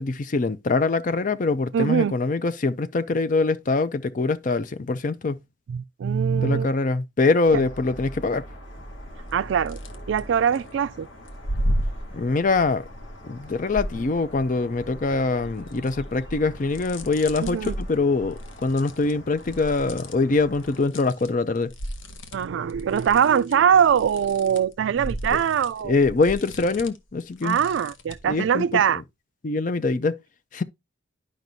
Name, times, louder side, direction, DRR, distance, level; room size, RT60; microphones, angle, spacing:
voice 1, 0.0-5.4 6.4-8.5 12.1-12.8 13.2-21.7 25.3-25.4 25.8-27.6 28.3-29.0 29.4-30.2 30.5-30.6, left 3 dB, 45° left, 0.5 m, -24 dB
voice 2, 1.7-2.1 5.7-6.7 7.5-7.6 9.3-9.8 10.1-11.1 17.4-17.7 22.3-26.0 27.4-29.0, right 8 dB, 75° right, 0.3 m, -22 dB
sound 1, 7.4-20.9, equal, 75° left, 2.8 m, -44 dB
sound 2, 8.7-9.3 9.7-10.6 11.2-14.5 14.9-21.3 21.5-28.3, equal, 90° left, 1.0 m, -34 dB
10.5 x 5.2 x 2.7 m
head